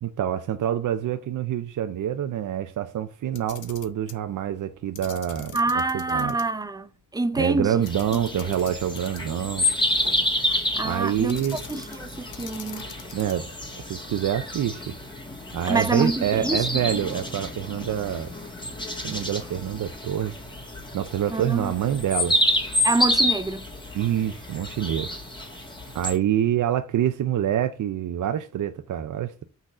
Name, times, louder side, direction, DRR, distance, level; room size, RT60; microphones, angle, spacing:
voice 1, 0.0-5.6 5.9-6.3 7.4-9.7 10.8-11.6 13.1-13.5 13.9-14.9 15.5-18.3 19.0-20.4 20.9-22.4 23.9-25.1 25.9-29.4, right 10 dB, 90° right, 0.6 m, -26 dB
Camera, 3.3-4.2 4.9-6.4 6.8-6.9 7.8-9.4 11.3-12.0 12.3-13.5, left 7 dB, 90° left, 1.2 m, -42 dB
voice 2, 5.5-7.8 8.5-8.6 10.8-11.4 11.7-12.9 15.7-17.0 21.3-21.7 22.8-23.6, right 2 dB, 15° right, 0.5 m, -26 dB
sound 1, 7.8-26.2, left 1 dB, 15° left, 2.0 m, -29 dB
6.2 x 4.0 x 6.1 m
wide cardioid pair, 115°, 30 cm